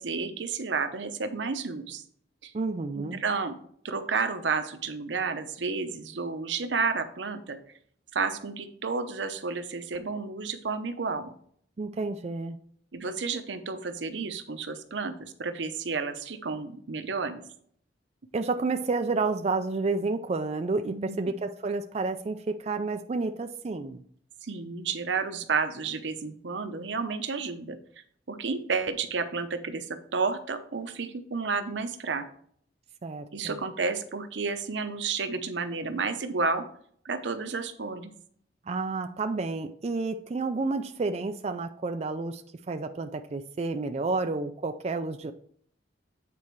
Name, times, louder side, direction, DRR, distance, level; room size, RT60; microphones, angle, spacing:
voice 1, 0.0-2.0 2.4-2.5 2.9-3.5 3.8-7.6 8.1-11.3 12.9-17.4 20.9-21.3 24.4-27.8 28.3-32.2 33.3-36.6 37.0-38.1, right 4 dB, 85° right, 9 dB, 0.8 m, -31 dB
voice 2, 2.5-3.2 11.8-12.6 18.3-24.0 33.0-33.6 38.7-42.4 42.7-45.3, right 3 dB, 35° right, 7 dB, 0.4 m, -30 dB
8.6 x 4.2 x 4.6 m, 0.62 s
head